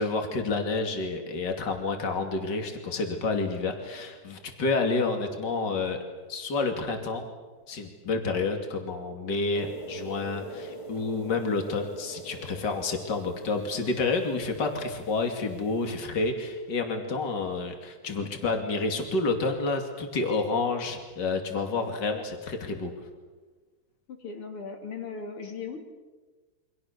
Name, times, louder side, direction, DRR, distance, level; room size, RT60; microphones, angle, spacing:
voice 1, 0.0-6.0 6.3-7.3 7.7-22.9, left 3 dB, 50° left, 4 dB, 3.2 m, -29 dB
sound 1, 9.5-15.9, right 2 dB, 15° left, 1.9 m, -43 dB
voice 2, 24.1-25.8, left 5 dB, 80° left, 3 dB, 3.8 m, -38 dB
29.0 x 25.0 x 6.8 m, 1.3 s
omnidirectional pair, 2.4 m